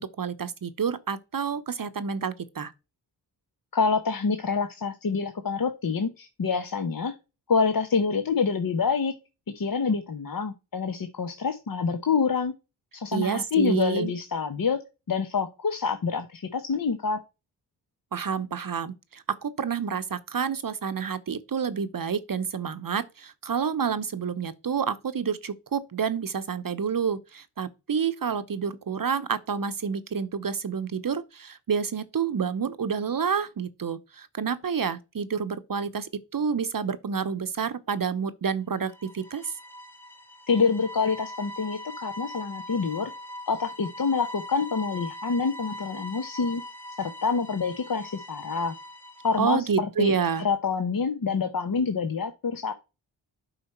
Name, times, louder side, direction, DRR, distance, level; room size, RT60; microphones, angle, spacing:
voice 1, 0.0-2.7 13.1-14.1 18.1-39.5 49.4-50.4, right 6 dB, 45° right, 0.9 m, -29 dB
voice 2, 3.7-7.1 7.5-9.1 9.5-12.5 12.9-14.8 15.1-17.2 40.5-43.1 43.5-46.6 47.0-48.7 49.2-52.7, left 5 dB, 45° left, 1.1 m, -27 dB
sound 1, 38.8-49.5, left 1 dB, 5° left, 1.4 m, -41 dB
7.9 x 4.9 x 4.4 m
supercardioid pair, 45°, 48 cm